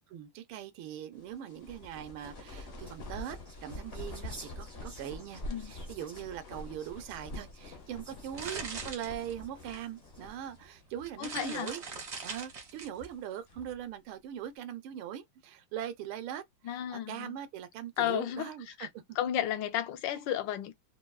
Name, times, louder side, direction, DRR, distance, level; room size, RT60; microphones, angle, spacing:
voice 1, 0.1-11.8 12.2-18.9, right 10 dB, 75° right, 1.4 m, -41 dB
sound 1, 1.2-10.7 11.0-11.1 11.7-12.2 12.7-13.8, left 1 dB, 50° left, 0.7 m, -45 dB
sound 2, 2.3-10.6 11.2-11.8, right 2 dB, 25° right, 0.5 m, -55 dB
sound 3, 8.0-9.7 10.5-10.6 11.0-13.0, right 4 dB, 45° right, 0.9 m, -41 dB
voice 2, 11.2-11.7 16.6-17.3 18.0-18.5 18.8-18.9 19.2-20.7, left 11 dB, 75° left, 1.1 m, -33 dB
4.0 x 2.2 x 2.2 m
omnidirectional pair, 2.3 m